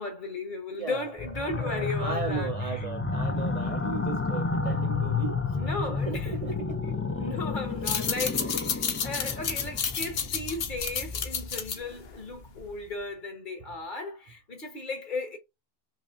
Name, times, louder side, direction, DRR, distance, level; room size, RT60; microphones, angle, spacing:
voice 1, 0.0-2.9 5.5-15.4, left 3 dB, 50° left, 1.4 m, -36 dB
voice 2, 0.7-1.1 1.6-5.4 5.9-6.8 8.4-8.5, right 6 dB, 50° right, 0.4 m, -36 dB
sound 1, 1.2-11.7, left 4 dB, 20° left, 0.3 m, -31 dB
sound 2, 7.7-12.9, left 7 dB, 75° left, 1.0 m, -31 dB
5.5 x 2.2 x 2.5 m
omnidirectional pair, 1.0 m